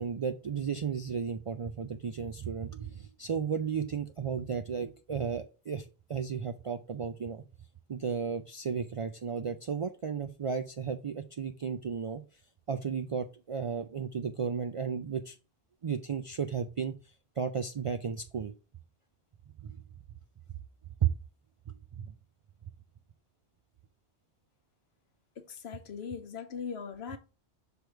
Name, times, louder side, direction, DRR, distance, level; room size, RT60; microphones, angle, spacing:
voice 1, 0.0-7.4 7.9-12.4 12.7-15.4 15.8-18.5 19.6-19.8 21.0-21.1 21.7-22.1, right 6 dB, 60° right, 0.3 m, -34 dB
voice 2, 25.4-27.2, left 6 dB, 80° left, 1.1 m, -40 dB
6.3 x 3.4 x 4.5 m
omnidirectional pair, 1.1 m